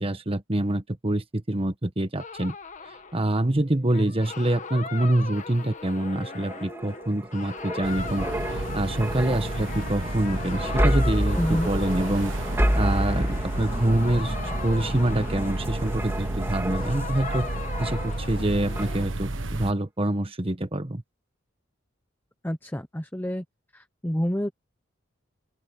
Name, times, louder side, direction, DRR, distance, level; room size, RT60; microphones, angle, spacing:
voice 1, 0.0-2.5 3.1-8.3 8.5-12.3 12.8-14.4 14.6-17.5 17.8-21.0, right 1 dB, 30° right, 1.3 m, -26 dB
sound 1, 2.2-19.1, left 4 dB, 40° left, 1.5 m, -39 dB
sound 2, 6.1-18.4 18.8-19.0, equal, 15° right, 2.9 m, -30 dB
sound 3, 7.8-19.7, right 2 dB, 80° right, 1.4 m, -32 dB
voice 2, 11.3-11.7 22.4-23.4 23.7-24.5, equal, 10° left, 0.9 m, -28 dB
open air
head